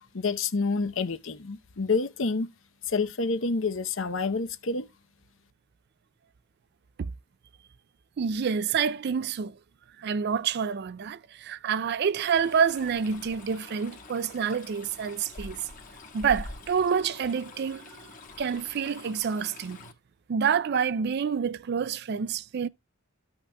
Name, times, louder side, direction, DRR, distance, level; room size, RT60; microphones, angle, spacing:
voice 1, 0.1-2.5 2.9-4.9, left 4 dB, 65° left, 0.8 m, -28 dB
voice 2, 8.2-9.6 10.0-15.6 16.1-19.8 20.3-22.7, right 6 dB, 50° right, 0.4 m, -28 dB
Stream, 12.2-19.9, left 2 dB, 40° left, 1.5 m, -45 dB
14.5 x 5.8 x 2.3 m
head